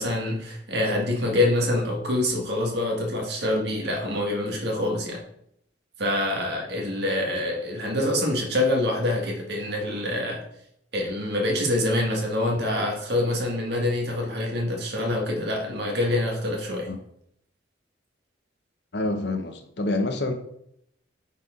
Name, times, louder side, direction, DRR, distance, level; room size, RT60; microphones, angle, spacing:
voice 1, 0.0-5.2 6.0-10.4 10.9-16.9, left 1 dB, 60° right, 0 dB, 1.8 m, -26 dB
voice 2, 18.9-20.3, left 2 dB, 65° left, 6 dB, 0.9 m, -27 dB
9.2 x 4.4 x 3.7 m, 0.73 s
head